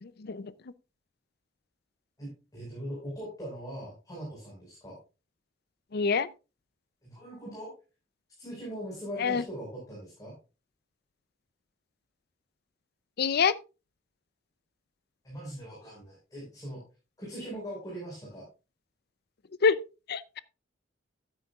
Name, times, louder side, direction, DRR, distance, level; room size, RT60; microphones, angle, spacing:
voice 1, 0.0-0.5 5.9-6.3 9.2-9.4 13.2-13.5 19.6-19.8 20.1-20.4, left 5 dB, 55° left, 0.5 m, -26 dB
voice 2, 2.2-5.0 7.0-7.7 8.4-10.3 15.2-16.8 17.2-18.5, equal, 20° left, 4.9 m, -41 dB
13.0 x 9.0 x 2.4 m
head